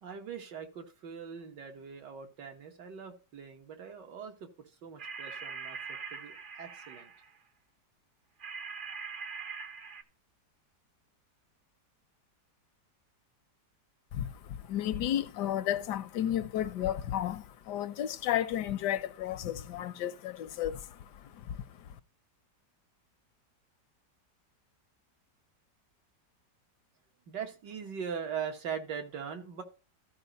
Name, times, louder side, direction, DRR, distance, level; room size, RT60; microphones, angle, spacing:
voice 1, 0.0-7.1 27.3-29.6, right 7 dB, 75° right, 2.0 m, -41 dB
sound 1, 5.0-7.4 8.4-10.0, right 5 dB, 45° right, 0.7 m, -42 dB
voice 2, 14.1-22.0, left 11 dB, 75° left, 1.2 m, -33 dB
13.5 x 5.0 x 3.9 m
omnidirectional pair, 1.9 m